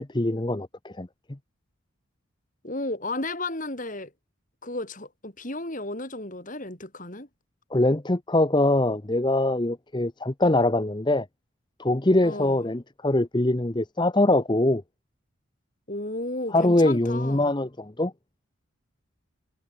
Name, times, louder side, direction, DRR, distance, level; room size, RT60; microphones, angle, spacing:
voice 1, 0.0-1.4 7.7-11.3 11.8-14.8 16.5-18.1, left 1 dB, 20° left, 0.8 m, -23 dB
voice 2, 2.6-4.1 4.6-7.3 12.2-12.6 15.9-17.5, left 2 dB, 40° left, 4.0 m, -33 dB
head